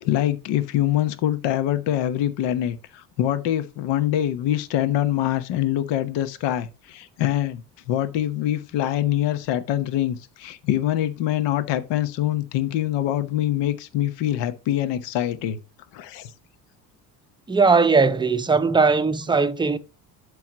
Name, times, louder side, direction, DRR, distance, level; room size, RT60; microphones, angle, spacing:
voice 1, 0.0-7.6 7.9-15.6 15.9-16.3, left 12 dB, 60° left, 0.9 m, -24 dB
voice 2, 17.5-19.8, right 4 dB, 10° right, 0.6 m, -19 dB
11.5 x 4.8 x 2.9 m
hypercardioid pair, 70°, 48 cm